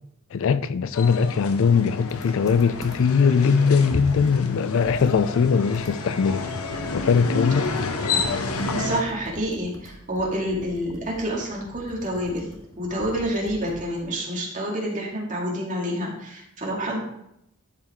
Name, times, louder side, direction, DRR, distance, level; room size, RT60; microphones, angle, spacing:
voice 1, 0.3-6.4 6.9-7.7, left 6 dB, 60° left, 0.3 m, -21 dB
sound 1, 0.9-9.0, left 3 dB, 85° left, 0.9 m, -29 dB
Computer keyboard, 2.1-3.3 3.7-3.8 4.1-7.4 7.6-14.1, left 1 dB, 15° left, 1.0 m, -45 dB
voice 2, 8.7-17.0, equal, 35° right, 2.3 m, -28 dB
12.0 x 5.0 x 3.6 m
head